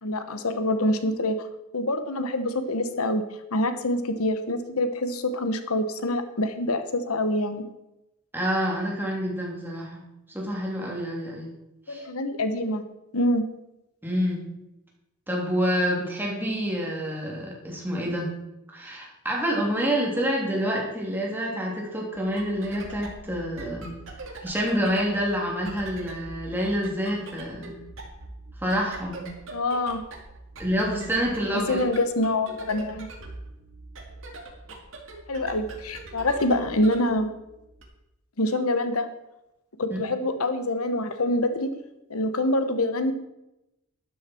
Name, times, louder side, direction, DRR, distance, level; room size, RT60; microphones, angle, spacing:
voice 1, 0.0-1.5 1.7-3.2 3.5-7.6 11.9-12.8 13.1-13.4 29.5-30.0 31.5-33.1 35.3-37.3 38.4-39.1 39.8-41.7 42.1-43.1, left 1 dB, 85° left, 9 dB, 1.1 m, -25 dB
voice 2, 8.3-11.5 11.9-12.1 14.0-14.5 15.3-18.4 18.7-24.0 24.4-27.8 28.6-29.3 30.6-31.8 39.9-40.0, equal, 10° right, -2 dB, 2.9 m, -27 dB
sound 1, 22.1-37.8, right 2 dB, 65° right, 2.2 m, -43 dB
12.5 x 10.5 x 4.5 m, 0.91 s
head